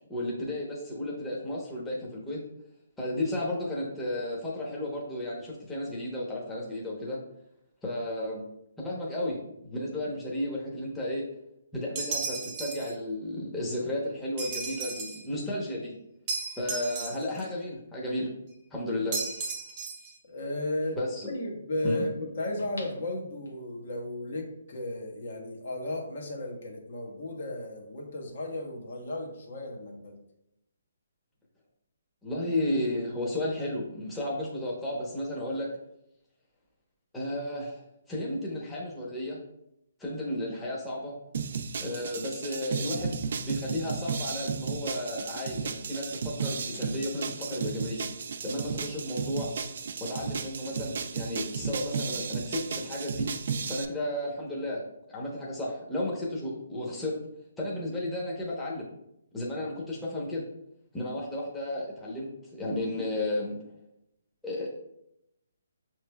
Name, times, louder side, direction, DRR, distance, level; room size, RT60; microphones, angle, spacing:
voice 1, 0.0-2.4 3.0-7.2 7.8-8.4 8.8-11.2 11.7-15.9 16.6-18.3 18.7-19.2 20.9-21.3 21.8-22.1 32.2-35.7 37.1-37.8 38.1-39.4 40.0-41.1 41.8-48.1 48.4-49.5 50.0-53.3 53.7-57.2 57.6-58.9 59.3-60.4 60.9-63.6 64.4-64.7, left 1 dB, 10° left, -5 dB, 0.9 m, -33 dB
sound 1, 12.0-12.9 14.4-15.3 16.3-17.5 19.1-20.1, right 4 dB, 30° right, 0.7 m, -34 dB
voice 2, 20.3-21.0 21.3-30.1, left 1 dB, 60° left, 0 dB, 1.1 m, -34 dB
sound 2, 22.6-23.9 24.4-24.5, left 2 dB, 85° left, 1.0 m, -46 dB
sound 3, 41.3-53.9, right 5 dB, 60° right, 0.4 m, -34 dB
5.9 x 3.1 x 2.3 m, 0.81 s
hypercardioid pair, 145°, 0 cm